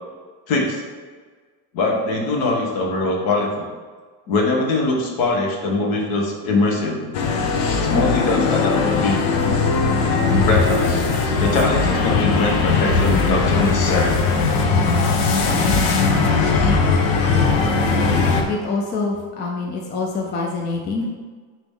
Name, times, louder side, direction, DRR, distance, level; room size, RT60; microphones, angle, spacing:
voice 1, 0.5-0.8 1.7-3.7 4.3-7.0 7.8-9.2 10.3-11.0 11.4-14.2, left 2 dB, 60° left, 0 dB, 1.4 m, -22 dB
sound 1, 7.1-18.4, left 4 dB, 90° left, 1.0 m, -19 dB
voice 2, 18.5-21.1, left 3 dB, 25° left, 0 dB, 0.4 m, -25 dB
9.1 x 3.1 x 3.7 m, 1.5 s
cardioid pair, 170°, 40 cm